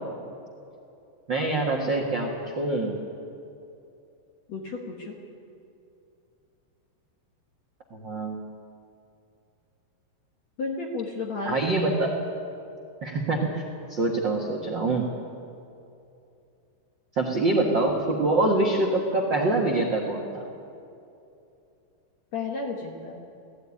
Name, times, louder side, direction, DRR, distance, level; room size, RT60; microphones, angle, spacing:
voice 1, 1.3-3.0 7.9-8.4 11.4-12.1 13.0-13.6 13.9-15.1 17.1-20.4, right 2 dB, 70° right, -1 dB, 1.0 m, -25 dB
voice 2, 4.5-5.1 10.6-11.6 22.3-23.2, left 4 dB, 55° left, 0 dB, 2.0 m, -32 dB
17.5 x 15.0 x 9.7 m, 2.7 s
omnidirectional pair, 5.0 m